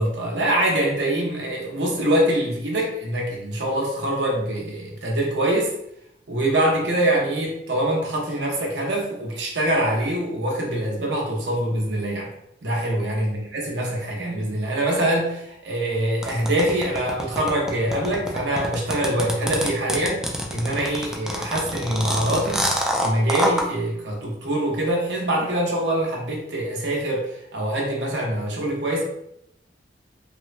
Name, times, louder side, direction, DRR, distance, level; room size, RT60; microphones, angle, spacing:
voice 1, 0.0-5.7 6.3-12.3 12.6-20.2 20.5-29.0, right 1 dB, 80° right, -1 dB, 0.7 m, -24 dB
sound 1, 16.2-23.6, equal, 5° right, 0.3 m, -25 dB
3.0 x 2.1 x 2.5 m, 0.79 s
head